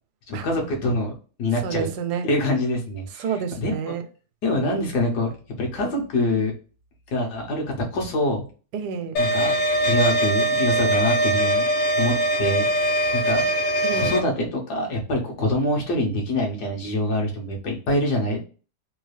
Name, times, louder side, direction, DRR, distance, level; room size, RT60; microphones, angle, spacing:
voice 1, 0.3-1.1 1.4-1.9 2.3-3.2 3.6-3.9 4.4-6.5 7.1-8.5 9.2-9.5 9.8-11.6 12.0-13.5 13.9-18.4, left 1 dB, 75° left, 1.5 m, -25 dB
voice 2, 1.6-2.3 3.2-4.0 8.7-9.3 13.8-14.2, right 7 dB, 80° right, 1.1 m, -29 dB
sound 1, 9.2-14.2, right 1 dB, 60° left, 1.0 m, -22 dB
3.5 x 2.3 x 3.2 m
omnidirectional pair, 1.7 m